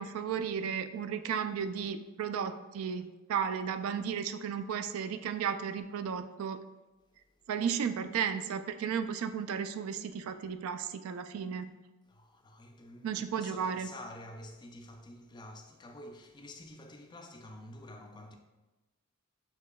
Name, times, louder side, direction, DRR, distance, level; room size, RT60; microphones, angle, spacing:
voice 1, 0.0-6.6 7.5-11.7 13.0-13.9, right 7 dB, 75° right, 0.3 m, -34 dB
voice 2, 12.1-18.4, left 1 dB, 20° left, 0.3 m, -49 dB
6.5 x 2.8 x 2.3 m
head